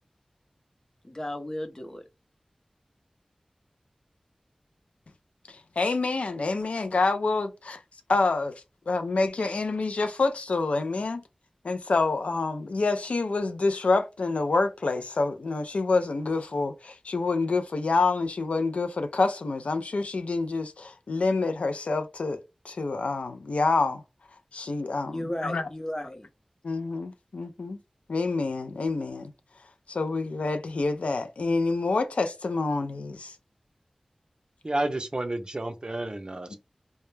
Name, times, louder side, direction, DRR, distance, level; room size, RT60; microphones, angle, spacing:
voice 1, 1.0-2.0 25.1-26.3, left 1 dB, 30° left, 0.6 m, -34 dB
voice 2, 5.8-7.8 8.1-8.5 8.9-11.2 11.6-24.0 24.5-25.6 26.6-27.8 28.1-29.3 29.9-33.3, left 3 dB, 85° left, 0.3 m, -27 dB
voice 3, 34.6-36.5, right 2 dB, 40° right, 0.5 m, -30 dB
2.2 x 2.0 x 3.0 m
wide cardioid pair, 60°, 2 cm